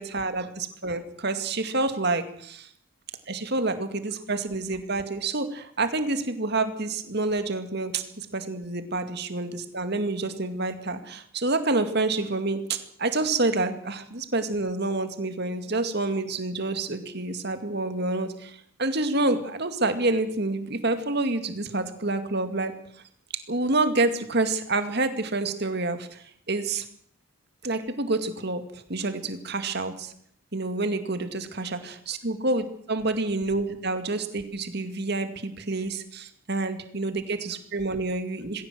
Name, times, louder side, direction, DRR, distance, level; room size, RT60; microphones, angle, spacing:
voice 1, 0.0-2.7 3.3-22.7 23.5-26.9 27.6-30.1 30.5-38.7, right 2 dB, 50° right, 9 dB, 2.3 m, -28 dB
20.0 x 16.5 x 7.9 m, 0.62 s
head